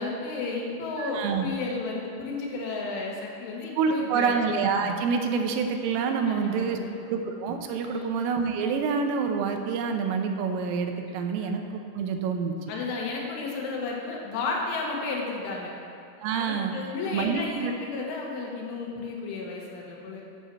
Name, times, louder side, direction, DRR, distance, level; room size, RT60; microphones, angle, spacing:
voice 1, 0.0-4.4 6.3-6.9 7.9-8.1 11.5-11.6 12.7-15.7 16.3-20.2, left 3 dB, 75° left, -2 dB, 3.8 m, -33 dB
voice 2, 1.0-1.5 3.8-6.8 7.1-12.7 16.2-16.7 17.1-17.7, right 5 dB, 90° right, 5 dB, 3.5 m, -27 dB
9.9 x 6.8 x 7.5 m, 2.6 s
omnidirectional pair, 5.7 m